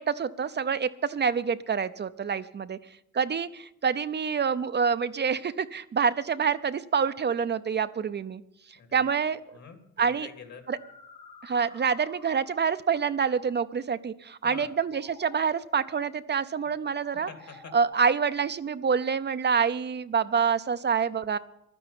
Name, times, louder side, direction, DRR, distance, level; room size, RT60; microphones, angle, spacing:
voice 1, 0.0-2.8 3.1-8.4 8.9-9.4 10.0-10.3 10.7-10.8 11.4-17.3 17.7-21.4, right 6 dB, 35° right, 11 dB, 0.5 m, -27 dB
voice 2, 8.7-10.7 14.4-14.7 16.6-16.7 17.1-17.8, left 5 dB, 60° left, 6 dB, 2.8 m, -47 dB
sound 1, 9.5-9.6 10.4-12.8 14.7-15.8 16.8-17.9, left 5 dB, 90° left, 2.1 m, -52 dB
11.5 x 9.9 x 8.7 m, 0.77 s
cardioid pair, 90°, 30 cm